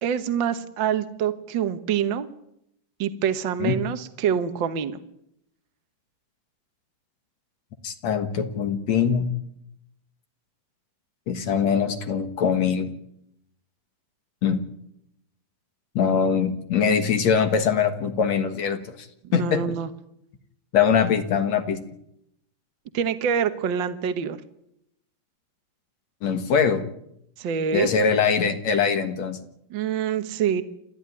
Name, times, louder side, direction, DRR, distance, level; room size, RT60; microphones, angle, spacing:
voice 1, 0.0-2.3 3.0-5.0 19.2-19.9 22.9-24.4 27.4-27.9 29.7-30.6, right 8 dB, 70° right, 11 dB, 1.1 m, -26 dB
voice 2, 7.8-9.3 11.3-12.9 14.4-14.6 16.0-19.1 19.3-19.6 20.7-21.8 26.2-26.9 27.7-29.4, left 6 dB, 60° left, 8 dB, 2.5 m, -22 dB
29.0 x 13.5 x 9.8 m, 0.77 s
omnidirectional pair, 3.9 m